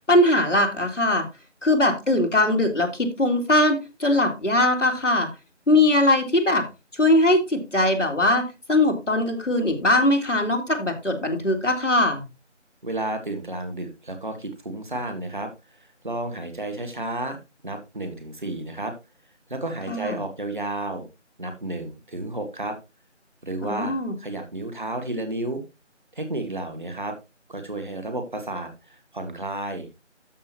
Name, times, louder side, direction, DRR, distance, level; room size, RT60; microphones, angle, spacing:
voice 1, 0.1-1.3 1.6-5.3 5.7-6.7 6.9-12.2 19.9-20.2 23.6-24.1, left 1 dB, 80° left, 4 dB, 2.9 m, -21 dB
voice 2, 12.8-17.4 17.6-19.0 19.5-21.1 21.4-22.8 23.4-25.6 26.1-27.1 27.5-30.0, right 2 dB, 40° right, 6 dB, 1.7 m, -32 dB
13.0 x 6.1 x 2.9 m, 0.25 s
figure-of-eight pair, 175°, 36 cm